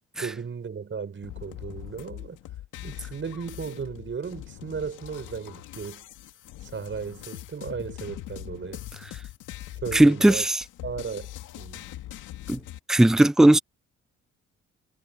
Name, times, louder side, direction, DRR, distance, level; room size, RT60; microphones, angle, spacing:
voice 1, 0.2-2.4 2.8-6.1 6.6-8.8 9.8-10.5 10.8-11.9, right 6 dB, 40° right, 5.9 m, -35 dB
sound 1, 1.2-12.8, left 14 dB, 90° left, 2.3 m, -42 dB
voice 2, 9.9-10.6 12.5-12.6 12.9-13.6, right 1 dB, ahead, 0.4 m, -17 dB
cardioid pair, 90°, 30 cm